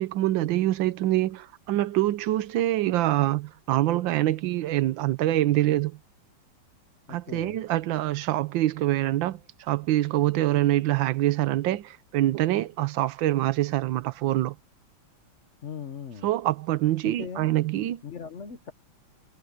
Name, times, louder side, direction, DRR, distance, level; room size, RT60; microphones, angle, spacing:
voice 1, 0.0-6.0 7.1-9.4 9.7-14.5 16.2-18.0, right 15 dB, 70° right, 1.4 m, -25 dB
voice 2, 7.1-7.6 15.6-16.3 17.0-17.5 18.0-18.7, left 6 dB, 45° left, 1.1 m, -39 dB
omnidirectional pair, 2.3 m